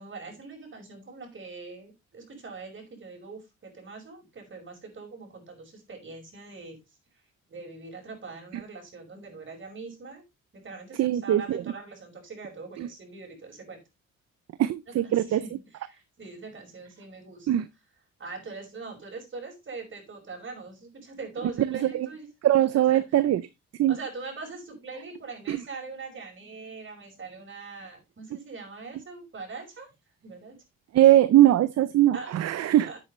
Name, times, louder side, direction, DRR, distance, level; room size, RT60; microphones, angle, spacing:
voice 1, 0.0-6.8 7.5-10.2 10.5-13.8 14.9-17.6 18.2-22.3 22.7-23.0 23.9-29.9 30.2-30.5 32.1-32.3 32.9-33.0, right 4 dB, 40° right, 5.5 m, -42 dB
voice 2, 11.0-11.6 12.8-12.9 14.6-15.4 17.5-17.6 21.7-22.1 22.4-23.4 23.8-24.0 25.5-25.6 30.9-32.9, right 13 dB, 60° right, 0.6 m, -21 dB
9.9 x 8.6 x 3.2 m
cardioid pair, 90°, 30 cm